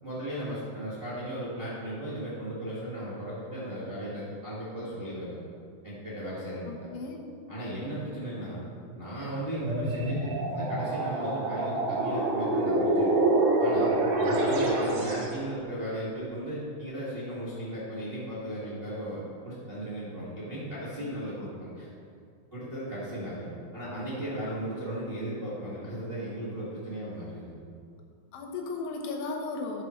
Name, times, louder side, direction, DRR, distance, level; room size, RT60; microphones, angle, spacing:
voice 1, 0.0-5.4 5.8-6.7 7.5-8.6 8.9-13.3 13.6-21.9 22.5-27.6, right 1 dB, 50° right, -10 dB, 0.6 m, -36 dB
voice 2, 6.7-7.2 21.0-21.1 24.5-24.6 28.3-29.8, left 3 dB, 85° left, 1 dB, 3.4 m, -35 dB
sound 1, 9.5-15.3, right 2 dB, 65° right, 2.2 m, -26 dB
13.0 x 7.5 x 3.2 m, 2.3 s
omnidirectional pair, 5.2 m